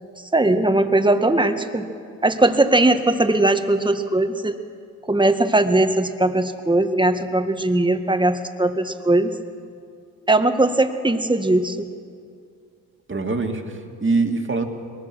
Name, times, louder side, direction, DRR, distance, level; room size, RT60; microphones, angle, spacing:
voice 1, 0.3-1.9 2.2-4.6 5.1-9.3 10.3-11.9, right 2 dB, 10° right, 7 dB, 1.7 m, -19 dB
voice 2, 13.1-14.6, right 3 dB, 30° right, 4 dB, 2.5 m, -23 dB
22.0 x 20.0 x 6.3 m, 2.3 s
supercardioid pair, 50°, 38 cm